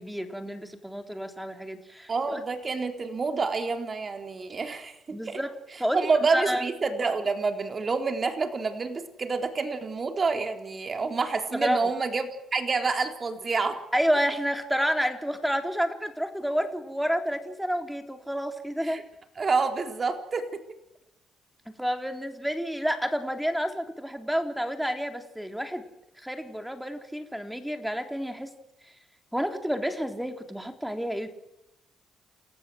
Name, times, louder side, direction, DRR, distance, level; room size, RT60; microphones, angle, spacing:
voice 1, 0.0-2.4 5.1-5.5 5.8-6.0 6.3-6.7 11.5-11.8 13.9-19.0 21.8-25.8 26.2-28.5 29.3-31.3, equal, ahead, 6 dB, 3.7 m, -29 dB
voice 2, 2.1-5.4 5.9-12.2 12.5-13.8 18.8-19.0 19.4-20.6, right 4 dB, 35° right, 6 dB, 3.8 m, -28 dB
29.5 x 15.0 x 7.9 m, 0.86 s
cardioid pair, 90°, 0 cm